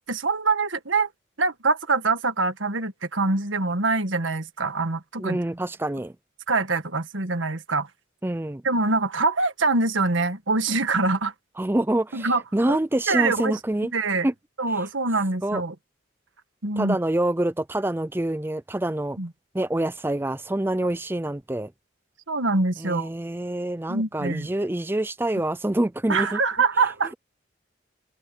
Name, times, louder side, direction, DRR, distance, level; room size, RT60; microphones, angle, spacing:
voice 1, 0.1-1.1 1.4-5.4 6.5-7.9 8.6-11.3 12.1-12.4 12.7-12.8 13.1-13.6 13.9-14.3 14.6-15.7 16.6-17.0 19.2-19.3 22.3-23.1 23.9-24.5 26.1-27.1, right 3 dB, 90° right, 1.7 m, -24 dB
voice 2, 5.2-6.1 8.2-8.6 11.6-13.9 14.2-14.3 15.4-15.6 16.8-19.2 19.5-21.7 22.8-26.4, right 1 dB, 10° right, 0.4 m, -26 dB
head